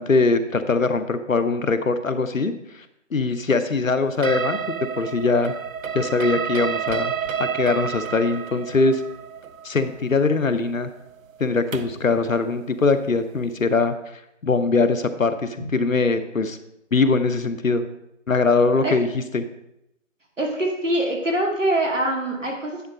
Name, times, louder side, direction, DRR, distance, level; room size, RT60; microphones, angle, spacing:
voice 1, 0.0-2.8 3.1-4.6 5.0-5.5 5.9-7.1 7.4-9.0 9.6-10.9 11.4-14.0 14.4-16.6 16.9-17.9 18.3-19.4, left 3 dB, 85° left, 10 dB, 0.8 m, -21 dB
sound 1, 4.2-12.1, right 7 dB, 85° right, 0.6 m, -30 dB
voice 2, 20.4-22.9, right 1 dB, 70° right, 0 dB, 2.4 m, -24 dB
9.5 x 3.9 x 5.2 m, 0.84 s
figure-of-eight pair, 180°, 39 cm